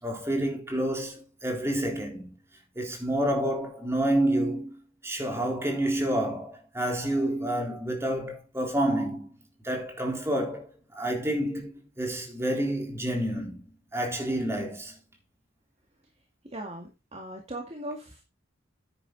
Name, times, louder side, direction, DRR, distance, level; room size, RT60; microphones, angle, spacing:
voice 1, 0.0-2.3 2.8-4.8 5.0-9.3 9.6-13.6 13.9-15.0, right 1 dB, 15° right, 3.6 m, -29 dB
voice 2, 16.5-18.2, right 1 dB, 30° right, 1.9 m, -39 dB
9.9 x 9.9 x 3.9 m
head